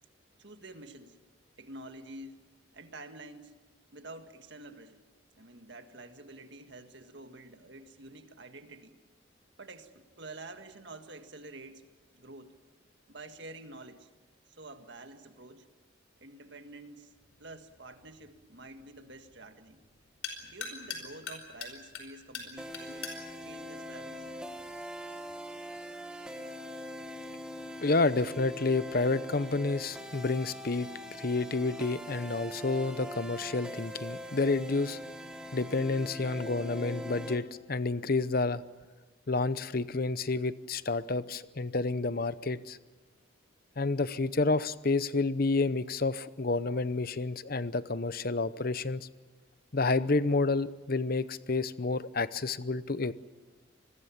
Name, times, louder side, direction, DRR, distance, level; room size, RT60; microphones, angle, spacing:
voice 1, 0.4-1.2 1.6-2.4 2.7-3.5 3.9-5.0 5.3-9.0 9.6-11.9 12.1-12.5 13.1-14.1 14.5-15.7 16.2-17.1 17.4-19.8 20.4-23.1 23.4-24.3, right 2 dB, 60° right, 7 dB, 1.8 m, -48 dB
sound 1, 17.2-24.8, left 5 dB, 85° left, 4.7 m, -45 dB
sound 2, 22.6-37.4, equal, 5° right, 1.9 m, -42 dB
voice 2, 27.8-30.9 31.2-35.0 35.5-38.6 39.3-42.8 43.8-49.1 49.7-53.1, left 3 dB, 45° left, 15 dB, 0.7 m, -29 dB
26.0 x 21.0 x 7.3 m, 1.3 s
head